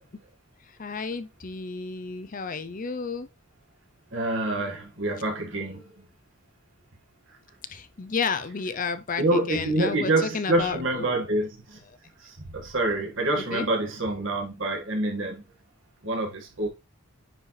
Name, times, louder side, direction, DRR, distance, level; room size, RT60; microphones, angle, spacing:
voice 1, 0.7-3.3 7.7-11.1 11.9-12.0 13.5-13.7, left 5 dB, 40° left, 0.5 m, -32 dB
voice 2, 4.1-5.8 9.2-11.5 12.5-15.4 16.0-16.7, right 2 dB, 60° right, 1.9 m, -26 dB
9.8 x 4.9 x 3.3 m
head